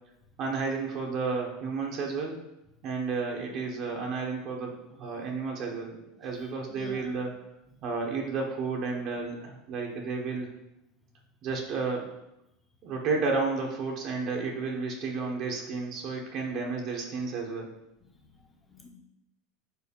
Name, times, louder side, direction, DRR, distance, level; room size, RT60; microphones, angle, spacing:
voice 1, 0.4-2.4 2.8-7.3 7.8-10.5 11.4-12.1 12.8-17.7, right 4 dB, 50° right, 0 dB, 1.2 m, -32 dB
voice 2, 6.2-7.1 18.0-18.9, left 3 dB, 10° left, 1 dB, 1.2 m, -50 dB
4.8 x 3.8 x 5.3 m, 0.86 s
supercardioid pair, 110°, 0 cm